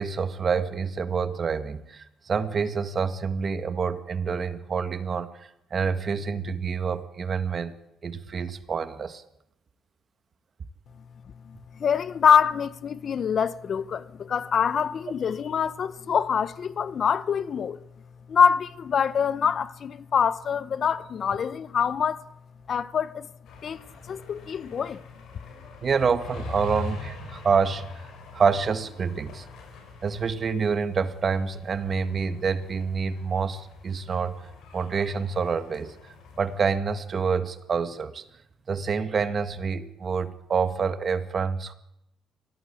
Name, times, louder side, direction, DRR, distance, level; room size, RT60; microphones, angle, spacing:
voice 1, 0.0-7.7 8.0-9.2 25.8-27.9 28.3-29.5 30.0-34.4 34.7-35.9 36.4-38.2 38.7-41.7, right 5 dB, 45° right, 1.8 m, -27 dB
voice 2, 11.4-17.8 18.3-22.2 22.7-23.3 23.6-25.0, left 7 dB, 55° left, 1.0 m, -25 dB
sound 1, 23.4-36.7, left 4 dB, 75° left, 7.3 m, -43 dB
24.0 x 17.5 x 8.6 m
cardioid pair, 90°, 0 cm